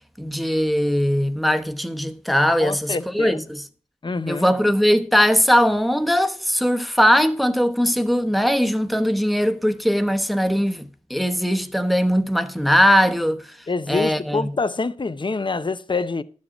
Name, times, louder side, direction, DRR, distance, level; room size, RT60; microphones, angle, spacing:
voice 1, 0.2-3.6 4.3-13.4 13.9-14.5, equal, ahead, 1.0 m, -20 dB
voice 2, 2.6-3.4 4.0-4.5 13.7-16.2, left 3 dB, 40° left, 0.7 m, -26 dB
12.0 x 7.5 x 6.1 m
wide cardioid pair, 70°, 12 cm